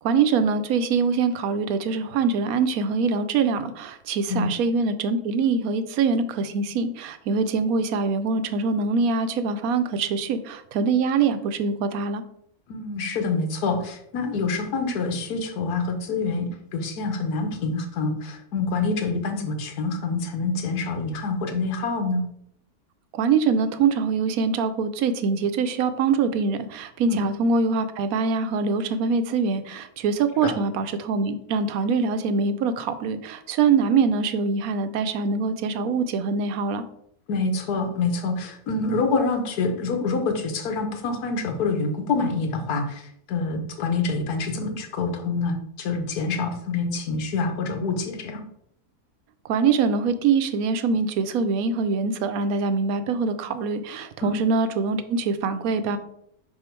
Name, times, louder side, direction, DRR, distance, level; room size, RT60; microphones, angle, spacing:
voice 1, 0.0-12.2 23.1-36.8 49.4-56.0, right 5 dB, 70° right, 10 dB, 1.0 m, -24 dB
voice 2, 12.7-22.3 27.1-27.2 30.4-30.5 37.3-48.4 54.2-54.4, left 3 dB, 90° left, 6 dB, 1.5 m, -26 dB
5.6 x 4.2 x 4.4 m, 0.72 s
omnidirectional pair, 1.6 m